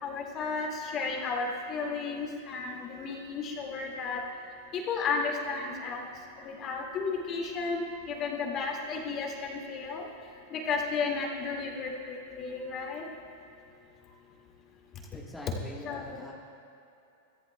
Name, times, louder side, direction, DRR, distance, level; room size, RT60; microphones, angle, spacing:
voice 1, 0.0-4.2 4.7-10.1 10.5-13.1 15.5-16.3, left 4 dB, 35° left, 0 dB, 1.9 m, -33 dB
voice 2, 15.1-16.3, left 1 dB, 5° left, -5 dB, 1.3 m, -44 dB
23.0 x 14.0 x 2.2 m, 2.7 s
supercardioid pair, 135°, 0 cm